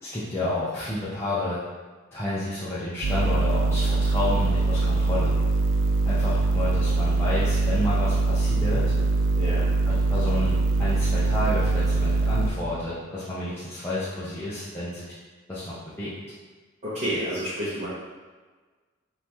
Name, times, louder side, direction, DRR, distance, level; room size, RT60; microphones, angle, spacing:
voice 1, 0.0-1.6 2.1-5.3 6.1-8.9 9.9-15.0 15.5-16.1, left 1 dB, 10° left, -11 dB, 0.7 m, -30 dB
sound 1, 3.0-12.5, right 3 dB, 65° right, 0.5 m, -23 dB
voice 2, 16.8-17.9, equal, 35° right, -11 dB, 1.1 m, -29 dB
5.4 x 2.8 x 3.1 m, 1.4 s
head